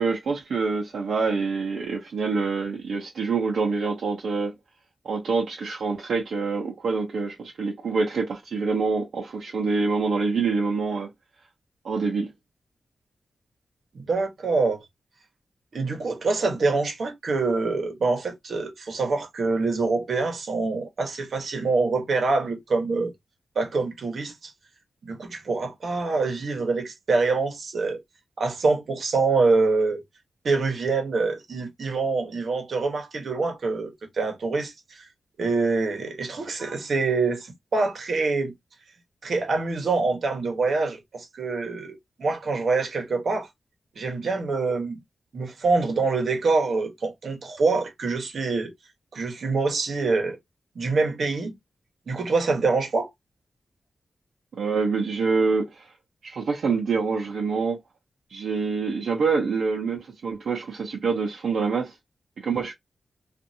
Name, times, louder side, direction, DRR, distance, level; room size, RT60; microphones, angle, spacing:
voice 1, 0.0-4.5 5.0-11.1 11.8-12.3 54.6-55.9 56.2-57.8 58.3-61.9 62.4-62.7, right 4 dB, 75° right, 0.8 m, -26 dB
voice 2, 13.9-14.8 15.7-23.1 23.5-24.5 25.0-28.0 28.4-30.0 30.4-35.0 35.4-38.5 39.2-43.5 44.0-45.0 45.3-48.7 49.1-50.4 50.7-51.5 52.1-53.1, right 3 dB, 60° right, 1.1 m, -25 dB
2.6 x 2.6 x 2.7 m
wide cardioid pair, 140°, 0 cm